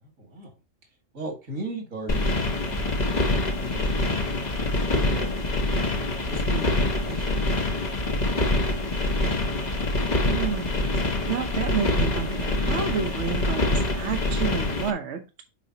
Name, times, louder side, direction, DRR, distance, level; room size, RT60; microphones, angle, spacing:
voice 1, 0.0-0.6 1.1-4.5 4.9-5.6 6.3-7.7 8.1-9.7, right 2 dB, 85° right, 2.5 m, -39 dB
sound 1, 2.1-14.9, left 2 dB, 35° left, 1.0 m, -25 dB
voice 2, 10.3-15.4, right 7 dB, 60° right, 1.1 m, -30 dB
7.2 x 5.2 x 2.8 m
omnidirectional pair, 1.4 m